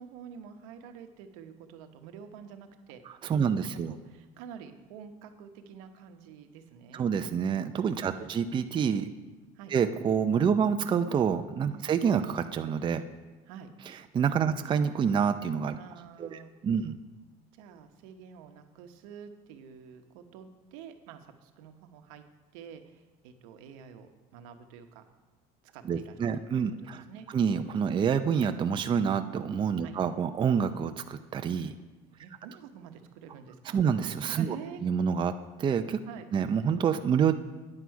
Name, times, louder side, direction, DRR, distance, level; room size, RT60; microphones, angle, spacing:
voice 1, 0.0-3.0 3.3-3.5 3.9-7.1 8.0-8.3 9.5-9.7 11.7-11.9 13.5-13.7 14.5-14.6 15.8-16.5 17.5-22.3 22.5-25.0 25.6-26.4 27.1-27.3 29.8-30.0 32.1-33.8 34.4-34.8 36.1-36.3, right 7 dB, 80° right, 7 dB, 1.0 m, -48 dB
voice 2, 3.2-3.9 6.9-9.1 9.7-13.0 13.9-15.8 16.2-17.0 25.8-31.7 33.7-34.6 34.8-35.3 35.6-36.0 36.3-37.3, right 7 dB, 30° right, 8 dB, 0.5 m, -27 dB
9.8 x 7.9 x 4.7 m, 1.2 s
supercardioid pair, 100°, 17 cm